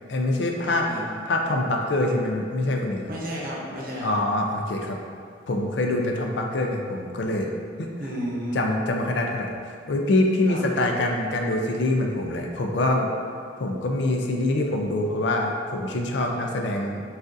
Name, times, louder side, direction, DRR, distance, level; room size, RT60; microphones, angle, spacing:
voice 1, 0.1-0.9 1.3-3.1 4.0-5.0 5.5-7.5 7.8-7.9 8.5-9.5 9.9-13.1 13.6-17.0, left 2 dB, 70° left, 1 dB, 0.4 m, -25 dB
voice 2, 0.6-1.0 3.1-4.2 8.0-8.6 10.5-10.6, equal, 45° right, -4 dB, 0.8 m, -32 dB
6.2 x 2.5 x 2.6 m, 2.2 s
head